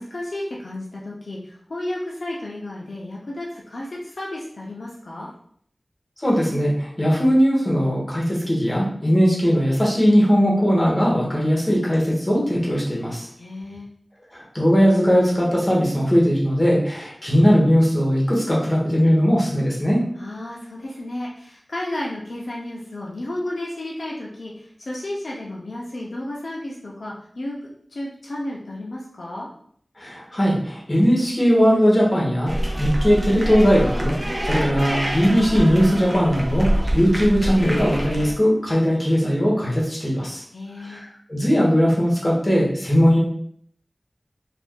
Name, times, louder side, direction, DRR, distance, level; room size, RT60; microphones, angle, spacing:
voice 1, 0.0-5.3 13.4-13.9 20.2-29.5 40.5-41.0, left 1 dB, 90° left, -4 dB, 0.5 m, -32 dB
voice 2, 6.2-13.3 14.3-20.0 30.0-32.5 32.8-40.4 40.8-43.2, equal, 35° left, -4 dB, 1.2 m, -19 dB
sound 1, 32.5-38.3, equal, 30° right, 0.6 m, -25 dB
2.6 x 2.5 x 3.6 m, 0.63 s
wide cardioid pair, 55°, 0 cm